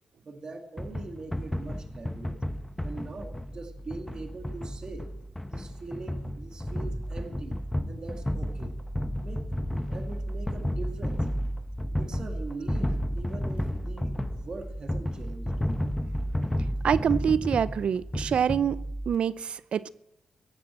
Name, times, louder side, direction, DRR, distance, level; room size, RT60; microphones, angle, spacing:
voice 1, 0.2-2.4 2.8-5.1 5.5-7.6 7.9-8.7 9.2-11.3 12.0-15.5, right 3 dB, 40° right, 4 dB, 2.1 m, -42 dB
sound 1, 0.8-19.2, equal, 10° left, 0.9 m, -32 dB
voice 2, 16.8-19.9, right 8 dB, 65° right, 17 dB, 0.5 m, -26 dB
16.5 x 10.5 x 7.6 m, 0.89 s
cardioid pair, 115°, 2 cm